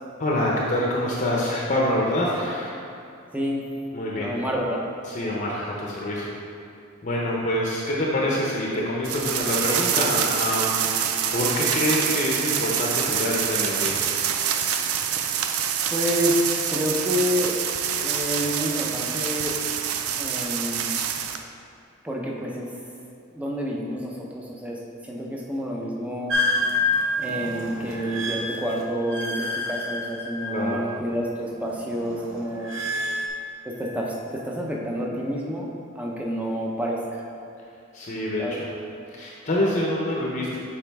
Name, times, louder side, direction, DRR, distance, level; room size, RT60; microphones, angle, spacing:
voice 1, 0.2-2.7 3.9-4.4 5.1-6.3 7.0-10.9 11.3-14.1 30.5-30.9 37.9-38.7 39.1-40.6, left 1 dB, 35° left, -4 dB, 0.7 m, -26 dB
voice 2, 4.2-4.8 15.9-17.5 18.0-19.6 20.2-20.9 22.0-22.7 23.3-26.4 27.2-32.8 33.7-35.7 36.0-37.2 38.4-38.6, equal, 5° right, -3 dB, 0.7 m, -28 dB
sound 1, 9.0-21.4, right 8 dB, 90° right, 0.4 m, -26 dB
sound 2, 26.3-31.0 31.3-33.3, left 2 dB, 65° right, 0.7 m, -28 dB
7.3 x 4.9 x 3.5 m, 2.5 s
head